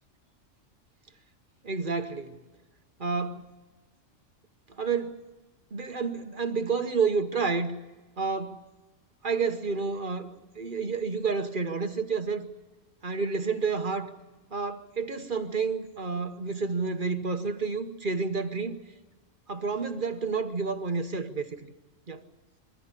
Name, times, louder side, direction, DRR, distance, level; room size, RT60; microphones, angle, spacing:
voice 1, 1.6-2.4 3.0-3.5 4.7-5.2 5.7-7.7 8.2-8.6 9.2-12.5 13.0-14.1 14.5-18.8 19.5-21.5 22.1-22.2, right 4 dB, 40° right, 1.3 m, -30 dB
23.0 x 14.5 x 9.9 m
omnidirectional pair, 1.3 m